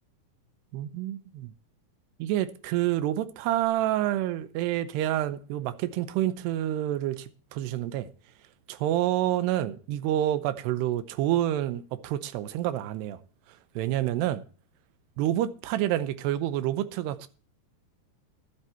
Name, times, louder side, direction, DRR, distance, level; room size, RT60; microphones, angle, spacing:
voice 1, 0.7-1.5 2.2-8.1 8.7-13.2 13.8-14.4 15.2-17.3, right 13 dB, 90° right, 3.0 m, -28 dB
11.5 x 10.5 x 4.5 m
omnidirectional pair, 4.7 m